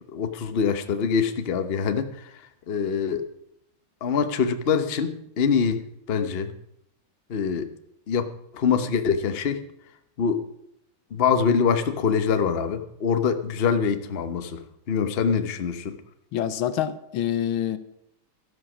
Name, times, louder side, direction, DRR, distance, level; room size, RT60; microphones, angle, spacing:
voice 1, 0.1-2.1 2.7-3.2 4.0-5.8 6.1-6.5 7.3-7.7 8.1-8.2 8.5-9.6 10.2-10.5 11.1-14.6 14.9-16.0, left 6 dB, 40° left, 8 dB, 0.9 m, -24 dB
voice 2, 16.3-17.8, left 10 dB, 85° left, 13 dB, 1.7 m, -26 dB
13.0 x 11.0 x 6.2 m, 0.75 s
omnidirectional pair, 2.3 m